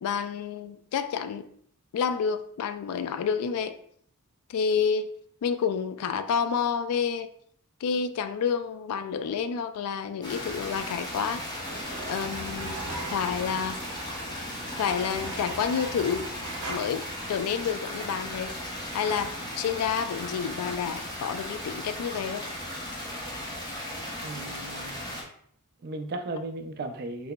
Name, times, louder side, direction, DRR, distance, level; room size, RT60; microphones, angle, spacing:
voice 1, 0.0-1.5 1.9-3.7 4.5-5.1 5.4-7.3 7.8-11.4 12.1-12.8 13.1-13.8 14.8-16.3 16.7-17.0 17.3-18.6 18.9-22.4, left 6 dB, 75° left, 10 dB, 0.3 m, -29 dB
sound 1, 10.2-25.2, left 1 dB, 20° left, 0.8 m, -36 dB
sound 2, 11.3-16.8, right 2 dB, 80° right, 0.8 m, -40 dB
voice 2, 24.2-25.1 25.8-27.3, right 2 dB, 45° right, 5 dB, 0.4 m, -36 dB
3.7 x 2.9 x 2.2 m, 0.63 s
head